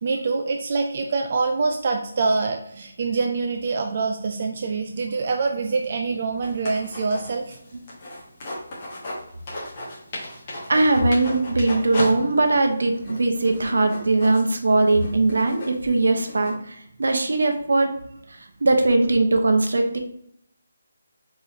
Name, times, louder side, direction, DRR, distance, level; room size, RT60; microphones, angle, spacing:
voice 1, 0.0-7.6, right 4 dB, 35° right, 3 dB, 0.4 m, -25 dB
sound 1, 6.4-9.2 9.5-12.1 12.4-12.5 13.0-16.5, left 1 dB, 25° left, 1.2 m, -35 dB
voice 2, 10.7-16.6 17.0-17.9 18.6-20.0, right 2 dB, 70° right, 4 dB, 0.9 m, -20 dB
4.8 x 3.9 x 2.8 m, 0.73 s
hypercardioid pair, 175°, 0 cm